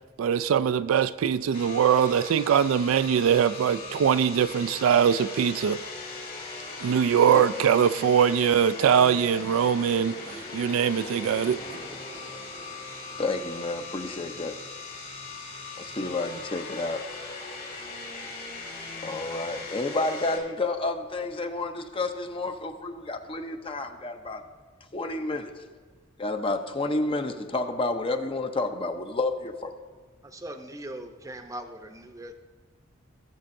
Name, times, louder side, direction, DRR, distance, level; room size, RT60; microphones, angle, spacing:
voice 1, 0.2-5.8 6.8-10.2 10.5-11.6, right 8 dB, 85° right, 0.3 m, -22 dB
sound 1, 1.5-20.4, left 3 dB, 45° left, 2.3 m, -39 dB
voice 2, 13.2-14.6 15.8-17.0 19.0-24.4 24.9-25.5 26.2-29.7, left 2 dB, 25° left, 0.6 m, -30 dB
voice 3, 30.2-32.3, right 1 dB, 15° right, 0.7 m, -40 dB
17.0 x 7.4 x 2.6 m
head